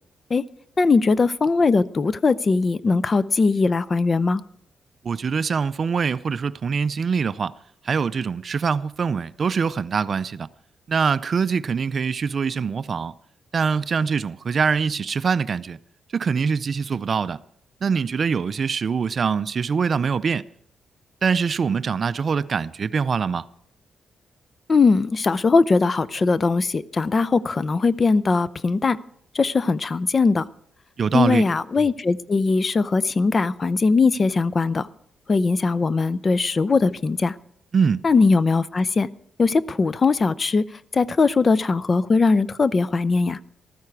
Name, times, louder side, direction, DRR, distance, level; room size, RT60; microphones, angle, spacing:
voice 1, 0.8-4.4 24.7-29.0 29.3-30.4 31.1-34.9 35.3-37.3 38.0-39.1 39.4-40.6 40.9-43.4, left 4 dB, 35° left, 0.5 m, -20 dB
voice 2, 5.0-7.5 7.8-10.5 10.9-13.1 13.5-15.8 16.1-17.4 17.8-20.4 21.2-23.5 31.0-31.5 37.7-38.0, right 5 dB, 50° right, 0.4 m, -23 dB
14.5 x 13.5 x 4.6 m
cardioid pair, 100°, 0 cm